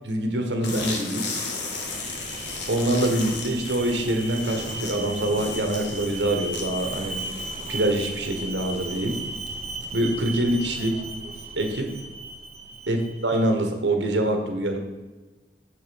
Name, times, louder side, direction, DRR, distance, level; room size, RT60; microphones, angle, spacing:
voice 1, 0.1-1.3 2.7-7.2 7.7-9.2 9.9-11.0 11.6-11.9 12.9-14.8, right 1 dB, 85° right, 4 dB, 1.5 m, -25 dB
sound 1, 0.6-10.1, left 3 dB, 75° left, 1.6 m, -36 dB
Alarm, 1.5-13.4, right 2 dB, 35° right, 0.9 m, -36 dB
7.2 x 7.1 x 5.3 m, 1.2 s
head